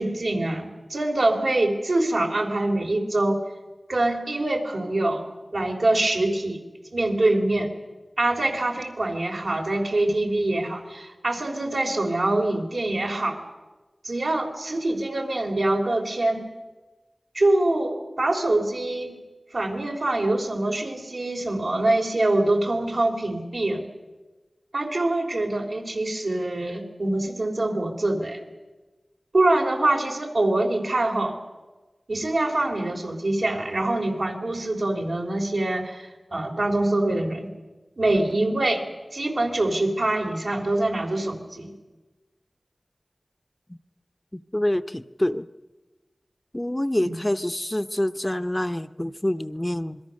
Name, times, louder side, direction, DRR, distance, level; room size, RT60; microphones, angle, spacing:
voice 1, 0.0-3.4 3.9-5.3 5.5-6.6 6.9-7.7 8.2-13.4 14.0-16.4 17.3-19.2 19.5-23.9 24.7-28.4 29.3-31.4 32.1-37.5 38.0-38.8 39.1-41.7 47.0-47.1, right 2 dB, 80° right, 1 dB, 3.6 m, -24 dB
voice 2, 44.3-45.5 46.5-50.0, left 1 dB, 20° left, 11 dB, 0.7 m, -26 dB
26.5 x 22.0 x 6.5 m, 1.2 s
wide cardioid pair, 50°, 0 cm